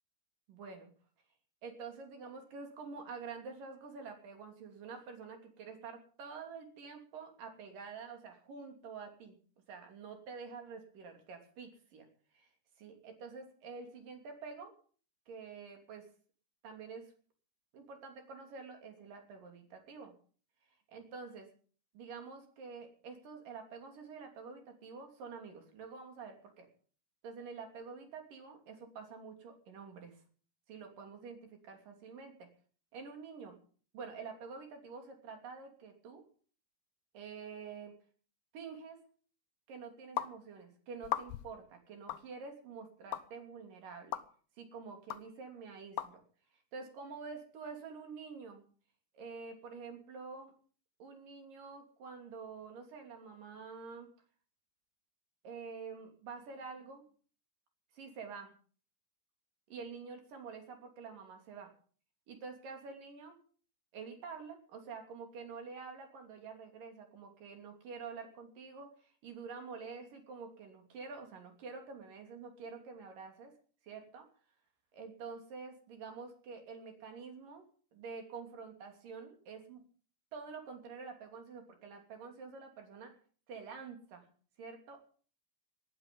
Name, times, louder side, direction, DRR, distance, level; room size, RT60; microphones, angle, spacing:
voice 1, 0.5-0.9 1.6-9.4 9.7-12.1 12.3-12.5 12.8-14.7 15.3-16.1 16.6-17.1 17.7-20.1 20.9-21.5 21.9-26.7 27.2-30.2 30.7-32.5 32.9-33.6 33.9-36.2 37.1-38.0 38.5-39.0 39.7-44.2 44.6-46.2 46.5-48.6 49.1-50.5 51.0-54.1 55.4-57.0 57.9-58.5 59.7-61.7 62.3-63.4 63.9-73.5 73.8-74.3 74.9-77.7 77.9-79.8 80.3-83.2 83.5-84.3 84.6-85.0, right 5 dB, 50° right, 5 dB, 4.3 m, -48 dB
sound 1, 40.2-40.3 41.0-41.5 42.1-42.2 43.1-43.2 44.1-44.2 45.1-45.2 46.0-46.1, left 13 dB, 80° left, 2.1 m, -36 dB
19.5 x 13.0 x 5.4 m, 0.43 s
omnidirectional pair, 5.2 m